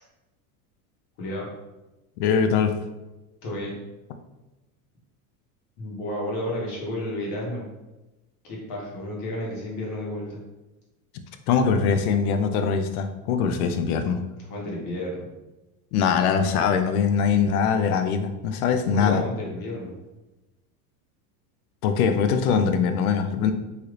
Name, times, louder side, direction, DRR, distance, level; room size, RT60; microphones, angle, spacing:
voice 1, 1.2-1.5 3.4-3.7 5.8-7.7 8.4-10.4 14.4-15.3 18.7-19.9, left 1 dB, 55° left, -3 dB, 1.3 m, -32 dB
voice 2, 2.2-2.7 11.5-14.2 15.9-19.2 21.8-23.5, left 6 dB, 85° left, 8 dB, 0.6 m, -22 dB
3.3 x 2.8 x 2.4 m, 1.0 s
supercardioid pair, 155°, 43 cm